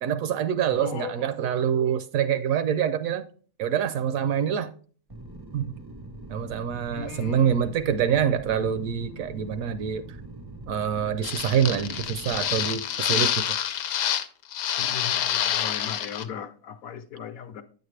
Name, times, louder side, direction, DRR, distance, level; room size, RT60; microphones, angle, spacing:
voice 1, 0.0-3.3 3.6-4.7 5.5-5.8 6.3-10.0 10.7-13.5, right 8 dB, 70° right, 0.9 m, -26 dB
voice 2, 0.7-1.4 6.9-7.8 14.8-17.6, left 6 dB, 70° left, 1.1 m, -37 dB
sound 1, 5.1-12.7, right 2 dB, 30° right, 0.4 m, -43 dB
sound 2, 11.2-14.2 14.5-16.2, left 10 dB, 90° left, 1.2 m, -27 dB
9.3 x 6.5 x 3.2 m
omnidirectional pair, 1.7 m